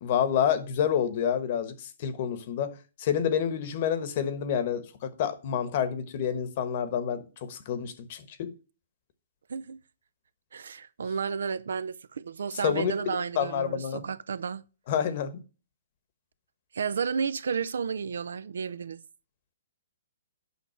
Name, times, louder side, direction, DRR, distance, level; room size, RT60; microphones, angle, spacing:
voice 1, 0.0-2.7 3.0-8.5 12.6-12.9 13.4-14.0 14.9-15.4, left 8 dB, 45° left, 1.2 m, -28 dB
voice 2, 10.5-14.7 16.7-19.0, right 6 dB, 80° right, 0.5 m, -32 dB
8.3 x 5.8 x 4.4 m
hypercardioid pair, 145°, 0 cm